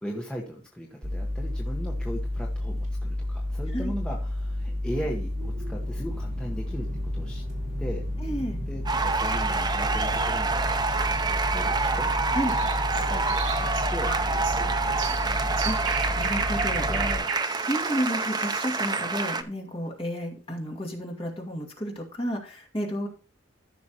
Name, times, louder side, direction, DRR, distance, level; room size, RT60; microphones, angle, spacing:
voice 1, 0.0-6.9 7.1-7.4 7.8-8.0 8.7-10.6 10.9-12.1 12.4-15.2 16.8-17.3, equal, 5° left, -2 dB, 1.1 m, -38 dB
sound 1, 1.0-17.2, left 1 dB, 40° right, 4.0 m, -31 dB
voice 2, 8.2-8.6 12.3-12.5 15.6-15.8 16.1-16.9 17.7-23.1, equal, 30° left, 1 dB, 2.2 m, -31 dB
sound 2, 8.9-19.4, right 3 dB, 20° right, 0.6 m, -27 dB
sound 3, 12.5-19.1, right 6 dB, 75° right, 1.1 m, -35 dB
14.0 x 6.1 x 2.9 m, 0.36 s
head